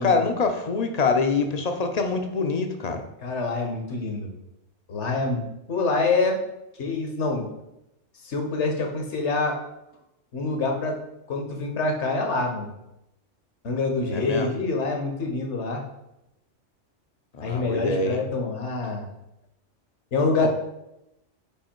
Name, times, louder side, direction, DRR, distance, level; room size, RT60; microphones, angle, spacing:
voice 1, 0.0-3.0 14.1-14.5 17.4-18.2 20.4-20.5, left 4 dB, 40° left, 5 dB, 0.6 m, -25 dB
voice 2, 3.2-4.3 4.9-6.4 6.8-7.5 8.2-9.6 10.3-11.0 11.3-12.7 13.6-15.8 17.4-19.0 20.1-20.5, left 3 dB, 70° left, 2 dB, 1.4 m, -26 dB
5.6 x 4.7 x 4.4 m, 0.88 s
omnidirectional pair, 1.3 m